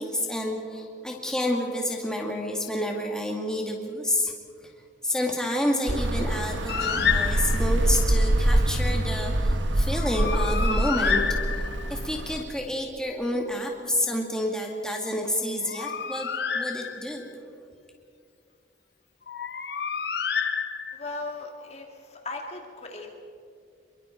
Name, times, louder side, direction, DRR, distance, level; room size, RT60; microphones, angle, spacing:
voice 1, 0.0-4.3 4.6-4.7 5.0-11.2 11.5-16.3 16.5-17.3, left 1 dB, 5° left, 0 dB, 2.3 m, -29 dB
sound 1, 5.9-12.4, right 1 dB, 75° right, 1.3 m, -25 dB
Bird, 6.7-7.9 9.9-12.0 15.4-17.3 19.3-21.2, left 6 dB, 55° left, 1.1 m, -29 dB
voice 2, 20.9-23.1, left 3 dB, 35° left, 2 dB, 2.0 m, -37 dB
27.0 x 22.5 x 4.6 m, 2.3 s
head